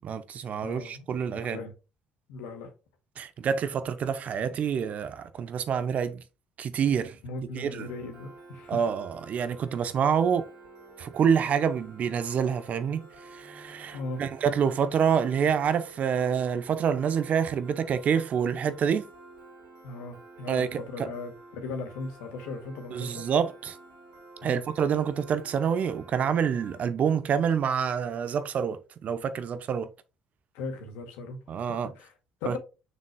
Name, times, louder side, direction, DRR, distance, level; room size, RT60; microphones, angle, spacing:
voice 1, 0.0-1.6 3.2-6.2 6.6-7.1 7.5-7.9 8.7-10.4 11.0-13.1 13.3-19.1 20.5-21.1 22.9-23.8 24.4-29.9 31.5-31.9 32.5-32.6, right 7 dB, 50° right, 0.9 m, -27 dB
voice 2, 0.6-1.2 1.4-1.7 2.3-2.7 7.2-8.8 13.9-14.2 19.8-23.3 24.4-24.6 30.5-31.4 31.7-32.1 32.4-32.6, left 3 dB, 70° left, 2.1 m, -38 dB
Piano, 7.8-26.8, right 2 dB, 70° right, 3.6 m, -50 dB
6.6 x 6.5 x 2.3 m
hypercardioid pair, 55°, 3 cm